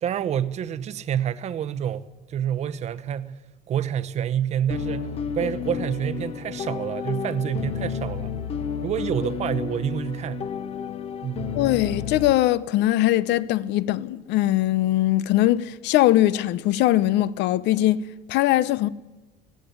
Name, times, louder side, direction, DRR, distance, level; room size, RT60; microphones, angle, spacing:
voice 1, 0.0-3.4 3.7-5.1 5.3-8.3 8.8-10.5 11.2-11.5, right 9 dB, 35° right, 0.9 m, -28 dB
sound 1, 4.7-12.3, left 7 dB, 30° left, 1.0 m, -31 dB
voice 2, 11.5-18.0 18.3-18.9, left 15 dB, 70° left, 0.8 m, -21 dB
18.5 x 15.5 x 9.4 m
cardioid pair, 170°, 19 cm